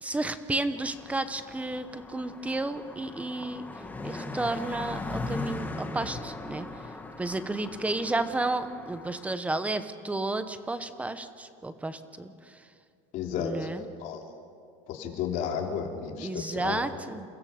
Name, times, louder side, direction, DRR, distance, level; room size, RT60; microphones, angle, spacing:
voice 1, 0.0-3.6 4.0-6.7 7.2-12.3 13.3-13.8 16.2-17.2, right 2 dB, 10° right, 11 dB, 1.0 m, -32 dB
Car passing by, 0.8-9.3, left 2 dB, 10° left, 1.6 m, -39 dB
voice 2, 13.1-13.5 14.0-14.2 14.9-16.8, left 8 dB, 55° left, 2 dB, 3.1 m, -32 dB
29.0 x 15.5 x 6.6 m, 2.3 s
cardioid pair, 145°, 16 cm